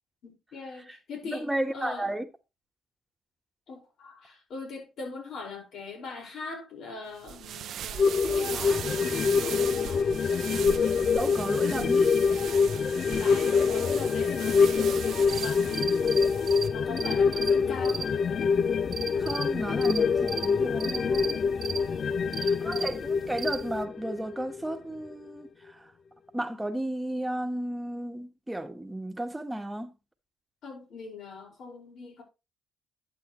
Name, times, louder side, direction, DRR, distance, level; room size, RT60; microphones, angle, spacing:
voice 1, 0.2-2.1 3.7-10.2 12.7-16.2 16.7-18.2 30.6-32.2, left 4 dB, 70° left, 5.2 m, -41 dB
voice 2, 1.3-2.2 11.0-12.1 19.2-21.4 22.4-25.9 26.3-29.9, right 1 dB, 10° right, 1.4 m, -33 dB
sound 1, 7.2-16.7, right 10 dB, 70° right, 0.5 m, -39 dB
sound 2, 8.0-24.8 25.1-25.2, left 5 dB, 50° left, 0.4 m, -25 dB
sound 3, 15.3-23.8, right 6 dB, 45° right, 1.1 m, -38 dB
11.5 x 8.4 x 3.2 m
cardioid pair, 90°, 0 cm